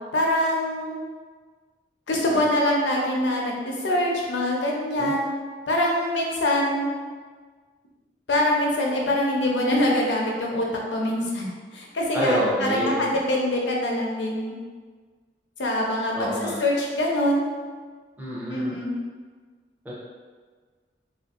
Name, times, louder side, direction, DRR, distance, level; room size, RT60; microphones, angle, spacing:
voice 1, 0.1-0.9 2.1-5.3 5.7-6.9 8.3-11.5 11.7-14.5 15.6-17.5 18.5-18.9, left 1 dB, 80° left, -1 dB, 0.6 m, -24 dB
voice 2, 12.1-13.0 16.1-16.5 18.2-18.7 19.8-19.9, equal, 10° right, -8 dB, 0.6 m, -27 dB
3.2 x 2.5 x 2.4 m, 1.5 s
head